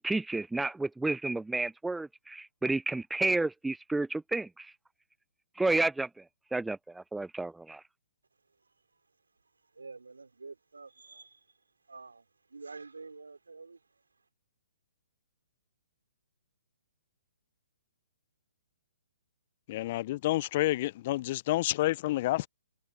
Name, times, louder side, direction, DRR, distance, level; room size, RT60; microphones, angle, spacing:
voice 1, 0.0-4.7 5.6-6.1 6.5-7.8, right 2 dB, 5° right, 0.4 m, -31 dB
voice 2, 9.7-11.5 11.9-13.8, right 4 dB, 80° right, 4.9 m, -48 dB
voice 3, 19.7-22.5, left 16 dB, 40° left, 0.7 m, -29 dB
figure-of-eight pair, 130°, 0 cm